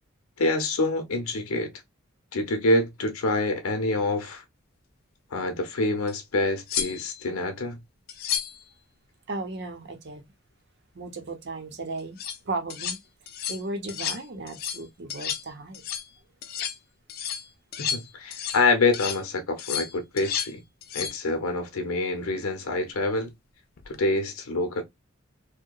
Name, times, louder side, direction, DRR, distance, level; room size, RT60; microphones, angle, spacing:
voice 1, 0.4-1.7 2.3-4.4 5.3-7.8 17.8-20.6 20.9-23.3 23.9-24.8, left 2 dB, 90° left, 0.7 m, -26 dB
sound 1, 6.1-6.2 6.7-7.2 8.1-8.6 12.0-12.4 12.7-13.0 13.3-13.6 13.9-14.2 14.5-14.8 15.1-15.5 15.7-16.1 16.4-16.8 17.1-18.7 18.9-19.2 19.6-20.5 20.8-21.2 23.8-24.0, left 8 dB, 45° left, 0.3 m, -32 dB
voice 2, 9.3-10.2 10.9-13.0 13.5-15.8, right 2 dB, 55° right, 0.7 m, -35 dB
2.7 x 2.1 x 2.2 m
head